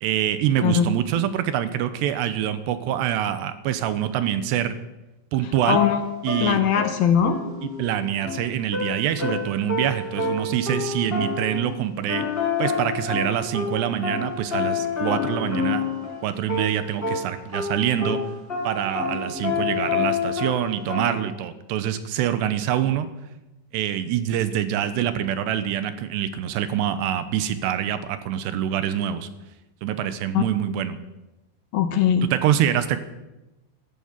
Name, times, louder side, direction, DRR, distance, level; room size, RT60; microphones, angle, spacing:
voice 1, 0.0-4.8 5.3-5.8 6.2-6.6 7.6-12.3 12.6-15.8 16.2-18.2 18.6-23.1 23.7-29.3 29.8-31.0 32.2-33.0, right 10 dB, 80° right, 11 dB, 3.1 m, -25 dB
voice 2, 0.6-0.9 5.7-6.0 6.4-7.4 30.3-30.4 31.7-32.3, left 8 dB, 70° left, 7 dB, 2.4 m, -20 dB
sound 1, 5.5-11.8 12.1-16.2 16.5-21.2, left 5 dB, 15° left, 5.2 m, -28 dB
14.0 x 13.0 x 7.3 m, 1.0 s
omnidirectional pair, 4.9 m